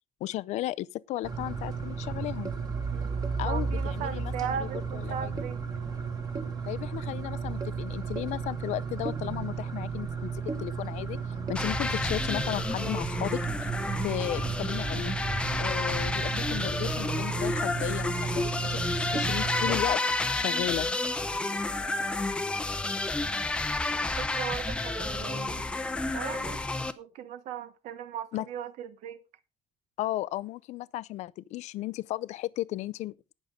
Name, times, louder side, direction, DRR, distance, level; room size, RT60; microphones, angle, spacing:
voice 1, 0.2-2.5 3.4-5.3 6.7-10.3 10.6-11.2 11.5-13.7 14.0-15.1 15.6-20.9 28.3-28.5 30.0-33.1, left 15 dB, 70° left, 0.5 m, -35 dB
sound 1, 1.2-19.8, right 5 dB, 30° right, 1.8 m, -33 dB
voice 2, 2.9-5.6 21.8-22.0 24.2-25.7 26.1-26.6 27.0-29.2, right 9 dB, 80° right, 1.2 m, -38 dB
sound 2, 11.5-26.9, left 2 dB, 10° left, 0.6 m, -30 dB
19.0 x 6.5 x 3.7 m
cardioid pair, 175°, 12 cm